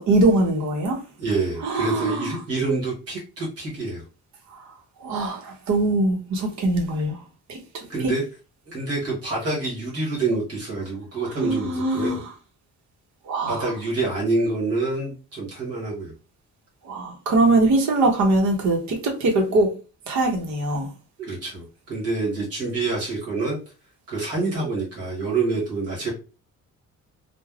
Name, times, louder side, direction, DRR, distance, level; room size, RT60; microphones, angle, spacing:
voice 1, 0.0-1.0 1.6-2.4 4.5-4.7 5.0-7.2 7.5-7.8 11.4-12.2 13.2-13.7 16.8-19.7 20.1-20.9, right 2 dB, 70° right, 0.9 m, -22 dB
voice 2, 1.2-4.0 7.9-8.2 8.7-12.2 13.5-16.1 21.2-23.6 24.1-26.1, right 3 dB, 55° right, 1.1 m, -27 dB
3.3 x 2.2 x 2.3 m
cardioid pair, 175°, 29 cm